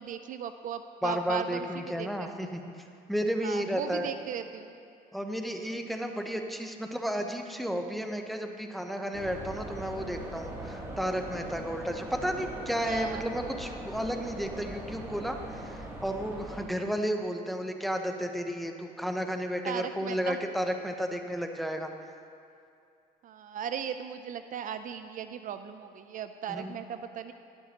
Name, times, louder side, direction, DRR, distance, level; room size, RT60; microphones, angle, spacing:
voice 1, 0.0-2.1 2.5-2.6 3.4-4.8 12.8-13.3 19.6-20.4 23.2-27.3, right 8 dB, 50° right, 10 dB, 0.4 m, -37 dB
voice 2, 1.0-2.7 3.1-4.1 5.1-21.9 26.5-26.7, equal, ahead, 4 dB, 0.7 m, -32 dB
sound 1, 9.1-16.7, right 1 dB, 15° right, 1.5 m, -41 dB
12.5 x 11.0 x 2.9 m, 2.4 s
cardioid pair, 110°, 17 cm